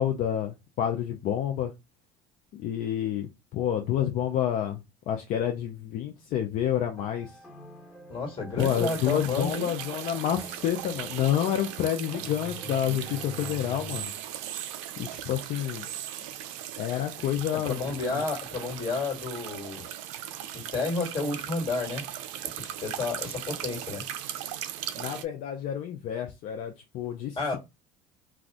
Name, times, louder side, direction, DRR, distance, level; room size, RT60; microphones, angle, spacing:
voice 1, 0.0-1.7 2.5-7.3 8.6-14.1 15.0-15.9 16.8-18.2 25.0-27.6, left 10 dB, 60° left, 0.5 m, -29 dB
sound 1, 7.0-14.1, left 1 dB, 5° right, 1.3 m, -48 dB
voice 2, 8.1-9.7 17.5-19.9 20.5-22.0 22.8-24.0 27.3-27.6, left 3 dB, 35° left, 1.7 m, -31 dB
sound 2, 8.5-8.7 9.5-9.6 9.9-10.0 11.3-11.4 12.1-14.4 14.8-14.9 15.7-15.8 16.2-16.6 17.2-17.3 18.6-19.4 20.4-20.7, left 1 dB, 75° left, 0.9 m, -47 dB
sound 3, 8.6-25.2, right 11 dB, 85° right, 0.4 m, -38 dB
2.4 x 2.3 x 3.5 m
supercardioid pair, 85°, 16 cm